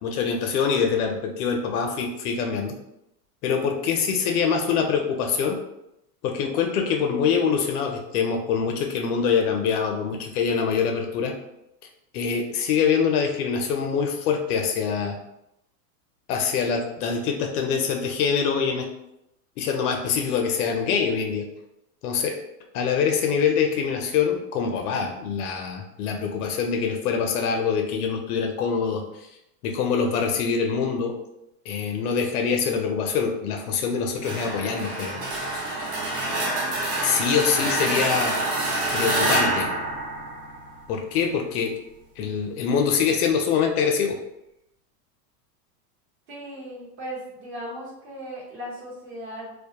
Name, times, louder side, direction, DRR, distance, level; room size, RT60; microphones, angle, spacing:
voice 1, 0.0-2.8 3.4-5.6 6.2-11.3 12.1-15.2 16.3-18.9 19.6-21.4 22.0-22.4 22.7-29.0 29.6-31.2 31.7-35.2 37.0-38.3 38.9-39.7 40.9-41.8 42.2-44.2, left 6 dB, 70° left, 3 dB, 0.6 m, -24 dB
sound 1, 34.2-40.9, right 2 dB, 80° right, 0.9 m, -27 dB
voice 2, 46.3-49.5, equal, 45° right, -4 dB, 1.0 m, -37 dB
2.2 x 2.0 x 2.8 m, 0.84 s
supercardioid pair, 155°, 46 cm